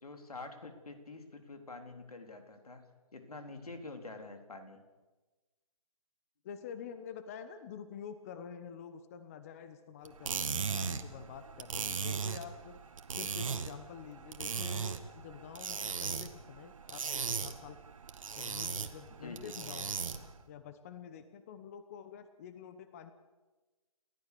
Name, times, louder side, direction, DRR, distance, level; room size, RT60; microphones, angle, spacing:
voice 1, 0.0-4.8 19.2-19.6, left 3 dB, 85° left, 6 dB, 3.8 m, -47 dB
voice 2, 6.4-12.8 13.1-17.8 18.3-20.1 20.5-23.1, left 8 dB, 25° left, 11 dB, 1.0 m, -48 dB
sound 1, 10.0-20.4, right 5 dB, 60° right, 2.0 m, -38 dB
30.0 x 14.5 x 6.9 m, 1.2 s
hypercardioid pair, 160°, 19 cm